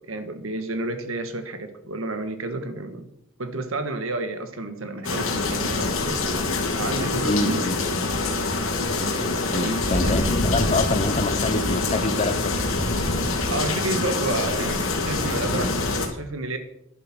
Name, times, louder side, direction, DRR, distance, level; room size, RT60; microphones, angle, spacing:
voice 1, 0.1-3.1 3.4-6.1 6.8-7.6 9.5-10.3 13.5-16.6, right 2 dB, 75° right, 1.5 m, -30 dB
sound 1, 5.0-16.1, left 3 dB, 75° left, 3.4 m, -25 dB
voice 2, 7.2-7.8 9.5-12.7, left 2 dB, 30° left, 0.8 m, -26 dB
12.0 x 11.0 x 6.1 m
head